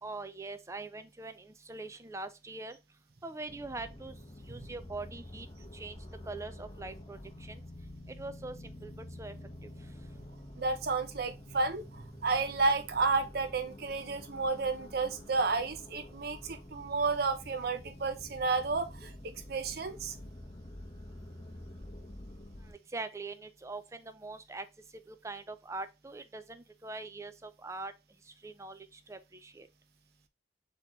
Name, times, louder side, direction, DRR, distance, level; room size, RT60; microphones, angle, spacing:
voice 1, 0.0-2.8 3.2-4.1 4.5-5.5 5.7-6.0 6.3-7.6 8.1-9.4 22.7-24.7 25.1-27.9 28.3-29.7, right 3 dB, 15° right, 0.4 m, -43 dB
sound 1, 3.5-22.7, left 1 dB, 25° left, 0.8 m, -48 dB
voice 2, 10.6-20.1, right 4 dB, 55° right, 0.7 m, -31 dB
4.2 x 3.0 x 4.1 m
head